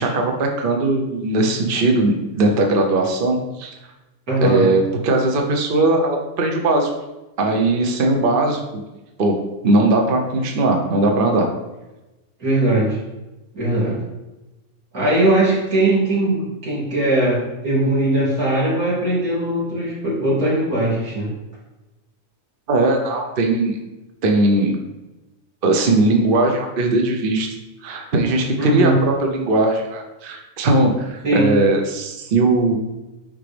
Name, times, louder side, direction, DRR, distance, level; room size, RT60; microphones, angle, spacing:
voice 1, 0.0-3.7 4.4-6.9 7.4-8.6 9.2-9.3 9.6-11.5 22.7-23.8 24.2-24.7 25.6-27.5 27.8-28.9 29.2-32.8, right 2 dB, 45° right, 2 dB, 0.9 m, -19 dB
voice 2, 4.3-4.7 12.4-13.0 13.5-14.0 14.9-21.3 28.6-29.0 31.2-31.5, right 1 dB, 80° right, -7 dB, 3.1 m, -19 dB
9.3 x 3.7 x 3.3 m, 1.0 s
omnidirectional pair, 1.5 m